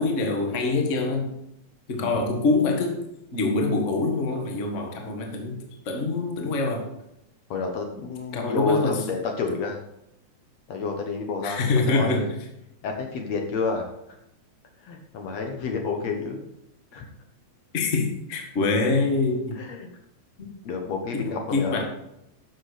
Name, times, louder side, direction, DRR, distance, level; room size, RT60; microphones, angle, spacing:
voice 1, 0.0-1.3 1.9-3.0 3.3-6.9 8.3-9.0 11.4-12.3 17.7-19.6 20.4-20.5 21.1-21.2 21.5-21.8, left 3 dB, 30° left, 3 dB, 1.4 m, -25 dB
voice 2, 7.5-9.8 10.7-12.3 12.8-13.9 14.9-16.5 16.9-17.1 19.6-19.9 20.6-21.8, left 4 dB, 65° left, 3 dB, 2.1 m, -29 dB
12.0 x 7.2 x 5.0 m, 0.83 s
omnidirectional pair, 3.6 m